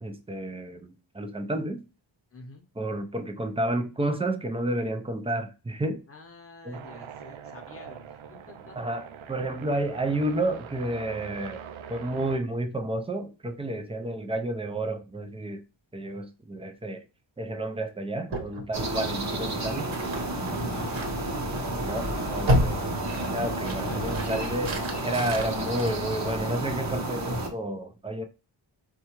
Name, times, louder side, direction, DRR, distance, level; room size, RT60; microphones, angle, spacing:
voice 1, 0.0-1.8 2.8-6.0 6.6-6.8 8.8-11.6 11.9-15.6 15.9-17.0 17.4-19.9 21.9-22.8 23.3-28.3, right 1 dB, 15° right, 0.4 m, -31 dB
voice 2, 2.3-2.6 6.1-8.8 20.5-21.2 21.9-22.5 23.7-24.3, left 2 dB, 30° left, 0.9 m, -46 dB
sound 1, 6.7-12.4, right 7 dB, 85° right, 0.5 m, -43 dB
sound 2, 18.3-26.7, equal, 70° right, 1.1 m, -32 dB
sound 3, 18.7-27.5, right 1 dB, 35° right, 0.8 m, -31 dB
4.3 x 2.4 x 2.9 m
wide cardioid pair, 90°, 47 cm